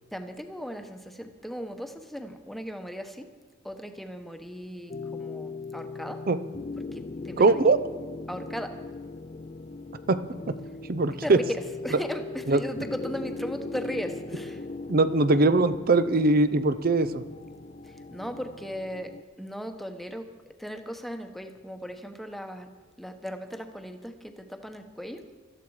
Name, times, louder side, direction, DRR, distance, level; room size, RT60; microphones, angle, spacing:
voice 1, 0.1-3.3 3.6-6.2 6.9-7.4 8.3-8.8 11.2-11.4 11.8-14.6 17.8-19.1 19.4-20.3 20.6-22.7 23.0-25.2, equal, ahead, 6 dB, 1.0 m, -37 dB
sound 1, 4.9-19.2, left 3 dB, 35° left, 0.5 m, -39 dB
voice 2, 7.4-7.8 10.1-10.2 10.5-10.6 10.9-11.4 12.5-12.6 14.9-17.2, right 3 dB, 50° right, 13 dB, 0.6 m, -21 dB
18.0 x 13.0 x 4.9 m, 1.5 s
head